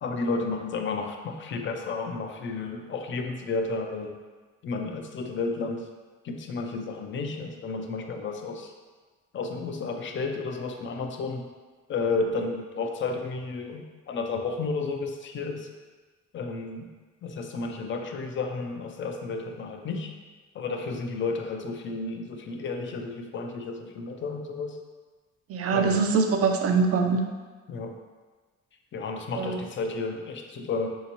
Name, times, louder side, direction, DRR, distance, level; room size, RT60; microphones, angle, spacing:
voice 1, 0.0-4.1 4.6-5.8 6.2-8.7 9.3-11.5 11.9-15.7 16.3-16.9 17.2-20.1 20.5-24.8 25.7-26.0 27.7-27.9 28.9-30.9, left 3 dB, 40° left, 4 dB, 0.4 m, -32 dB
voice 2, 25.5-27.3 29.4-29.6, right 4 dB, 50° right, 4 dB, 0.5 m, -23 dB
3.4 x 2.8 x 2.9 m, 1.4 s
cardioid pair, 90°, 30 cm